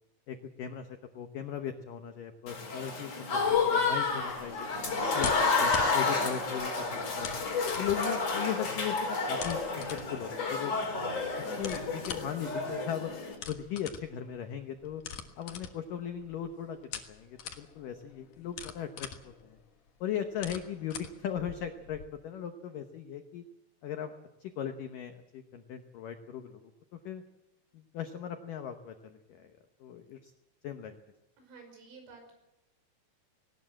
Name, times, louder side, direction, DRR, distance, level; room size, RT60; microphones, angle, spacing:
voice 1, 0.3-3.4 3.7-4.7 5.1-7.4 7.8-10.7 11.5-13.1 13.5-15.0 15.4-19.6 20.0-23.4 23.8-24.1 24.4-26.7 27.0-27.2 27.7-29.5 29.8-30.3 30.6-31.0, left 9 dB, 85° left, 6 dB, 1.9 m, -38 dB
Applause / Crowd, 2.5-13.3, left 4 dB, 35° left, 4.9 m, -30 dB
sound 1, 3.5-22.0, left 8 dB, 60° left, 2.2 m, -45 dB
voice 2, 31.4-32.3, right 4 dB, 85° right, 4 dB, 8.1 m, -52 dB
19.5 x 18.5 x 7.7 m, 0.96 s
omnidirectional pair, 5.6 m